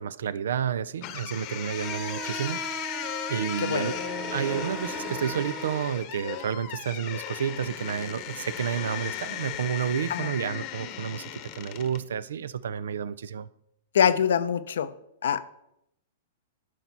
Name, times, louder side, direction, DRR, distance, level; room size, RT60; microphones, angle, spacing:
voice 1, 0.0-2.6 3.3-4.0 4.3-13.5, right 8 dB, 80° right, 17 dB, 0.4 m, -30 dB
sound 1, 1.0-12.1, left 10 dB, 45° left, 0.9 m, -36 dB
sound 2, 1.7-5.8, right 4 dB, 10° right, 0.7 m, -38 dB
voice 2, 3.6-3.9 10.1-10.3 13.9-14.9 15.2-15.4, left 8 dB, 80° left, 13 dB, 0.6 m, -24 dB
11.5 x 4.6 x 4.1 m, 0.78 s
hypercardioid pair, 125°, 0 cm